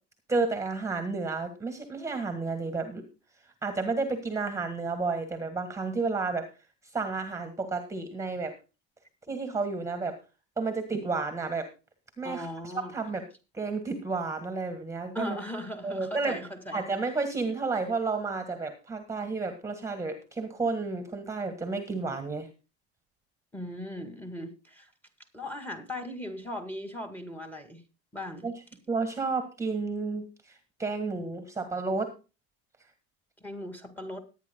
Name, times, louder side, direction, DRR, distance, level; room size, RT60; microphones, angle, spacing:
voice 1, 0.3-3.0 3.6-6.5 6.8-8.6 9.3-10.2 10.6-11.7 12.2-13.2 13.5-15.4 15.8-16.4 16.7-22.5 28.4-28.6 28.9-32.1, right 4 dB, 10° right, 9 dB, 1.7 m, -31 dB
voice 2, 12.2-12.9 15.1-16.8 23.5-24.9 25.3-27.8 28.1-28.5 33.4-34.2, left 1 dB, 5° left, 6 dB, 2.0 m, -38 dB
20.5 x 9.5 x 2.3 m, 0.30 s
cardioid pair, 150°, 29 cm